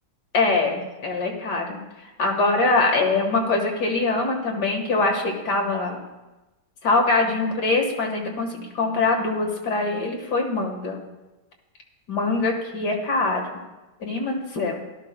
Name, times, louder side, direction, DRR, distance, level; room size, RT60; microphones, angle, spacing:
voice 1, 0.3-1.8 2.2-6.0 6.8-11.0 12.1-13.6 14.0-14.8, left 3 dB, 80° left, 1 dB, 2.1 m, -23 dB
17.0 x 12.5 x 2.2 m, 1.1 s
omnidirectional pair, 1.8 m